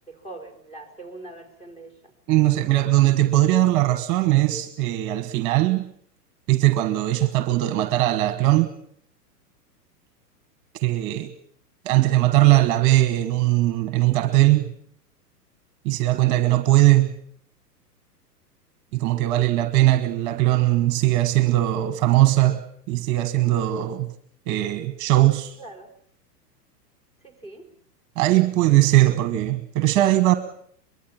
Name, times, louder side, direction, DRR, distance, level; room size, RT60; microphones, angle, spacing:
voice 1, 0.1-1.9 25.6-25.9 27.2-27.7, right 2 dB, 10° left, 4 dB, 4.8 m, -42 dB
voice 2, 2.3-5.8 6.5-8.7 10.7-11.3 11.8-14.7 15.8-17.1 18.9-24.1 24.5-25.5 28.2-30.4, right 16 dB, 35° right, 11 dB, 1.4 m, -20 dB
23.5 x 21.0 x 7.4 m, 0.64 s
figure-of-eight pair, 105°, 49 cm